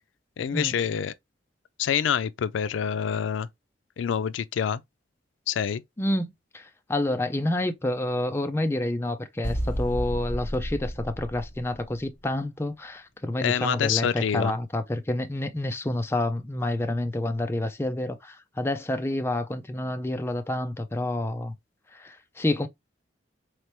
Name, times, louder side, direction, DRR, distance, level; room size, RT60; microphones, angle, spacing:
voice 1, 0.4-1.1 1.8-3.5 4.0-4.8 5.5-5.8 13.4-14.6, left 8 dB, 85° left, 0.4 m, -26 dB
voice 2, 6.0-21.6 21.9-22.7, left 1 dB, 15° left, 0.4 m, -28 dB
sound 1, 9.4-12.2, equal, 50° left, 1.8 m, -32 dB
4.0 x 3.3 x 2.8 m
head